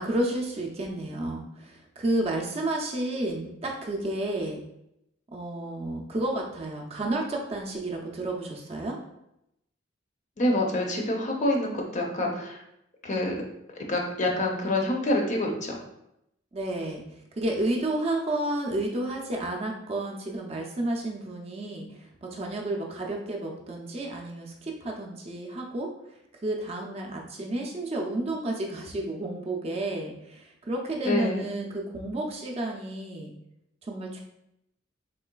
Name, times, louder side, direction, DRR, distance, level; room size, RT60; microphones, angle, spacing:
voice 1, 0.0-4.6 5.3-9.0 16.5-33.3 33.8-34.2, right 1 dB, 30° right, 0 dB, 0.4 m, -31 dB
voice 2, 10.4-12.6 13.0-13.4 13.7-15.8 31.0-31.5, left 1 dB, 40° left, 0 dB, 0.5 m, -27 dB
3.7 x 3.1 x 2.2 m, 0.82 s
head